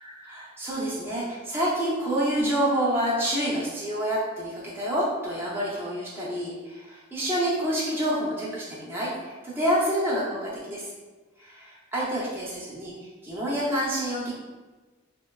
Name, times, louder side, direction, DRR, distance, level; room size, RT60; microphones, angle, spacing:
voice 1, 0.0-10.8 11.4-12.9 13.2-14.3, equal, 10° right, -8 dB, 0.4 m, -28 dB
2.6 x 2.2 x 2.2 m, 1.2 s
head